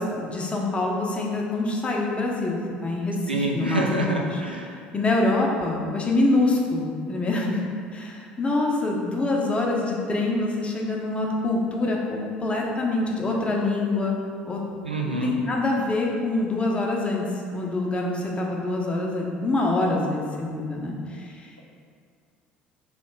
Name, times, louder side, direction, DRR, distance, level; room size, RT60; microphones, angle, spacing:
voice 1, 0.0-4.4 4.9-7.6 7.9-14.6 15.0-17.2 17.5-21.5, left 2 dB, 20° left, -1 dB, 0.7 m, -25 dB
voice 2, 3.3-4.7 14.8-15.4, right 2 dB, 90° right, 0 dB, 0.3 m, -26 dB
3.2 x 2.8 x 4.5 m, 2.2 s
figure-of-eight pair, 60°, 5 cm